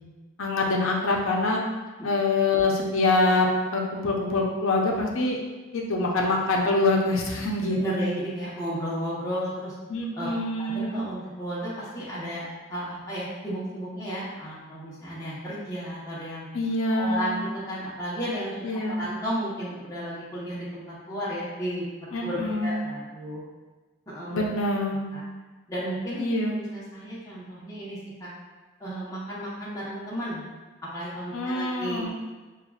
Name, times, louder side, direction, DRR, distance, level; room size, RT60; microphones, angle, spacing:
voice 1, 0.4-1.6 2.0-5.4 5.7-8.1 9.9-11.1 16.5-17.5 18.6-19.1 22.1-22.8 24.3-25.1 26.2-26.6 31.3-32.1, left 2 dB, 65° left, -1 dB, 0.6 m, -25 dB
voice 2, 7.8-9.7 10.1-10.3 10.6-16.5 16.9-21.8 22.2-23.4 24.1-24.4 25.1-25.2 25.7-26.2 26.5-28.3 28.8-30.4 30.9-32.1, equal, 15° left, -9 dB, 0.9 m, -33 dB
6.5 x 2.4 x 2.3 m, 1.2 s
head